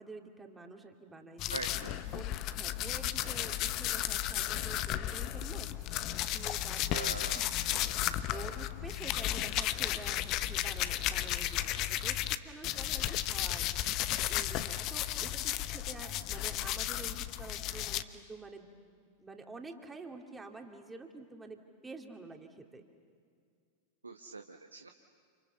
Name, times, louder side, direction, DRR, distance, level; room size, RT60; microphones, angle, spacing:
voice 1, 0.0-1.6 2.0-7.5 8.1-18.7 19.2-22.8, right 3 dB, 10° right, 3 dB, 2.7 m, -48 dB
sound 1, 1.4-12.4 12.6-18.0, left 13 dB, 40° left, 0.9 m, -34 dB
voice 2, 1.5-2.0 6.9-7.5 24.0-24.9, right 3 dB, 80° right, 5 dB, 1.1 m, -42 dB
29.5 x 29.0 x 6.9 m, 2.2 s
figure-of-eight pair, 90°, 0 cm